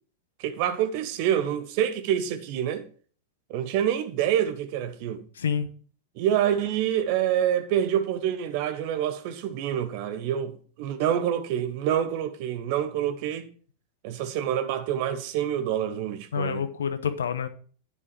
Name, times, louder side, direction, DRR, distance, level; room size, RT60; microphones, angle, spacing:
voice 1, 0.4-2.8 3.5-5.2 6.2-13.5 14.0-16.6, right 10 dB, 45° right, 1.2 m, -27 dB
voice 2, 5.4-5.7 16.3-17.5, left 7 dB, 65° left, 1.0 m, -28 dB
10.0 x 7.2 x 4.6 m
figure-of-eight pair, 90°, 0 cm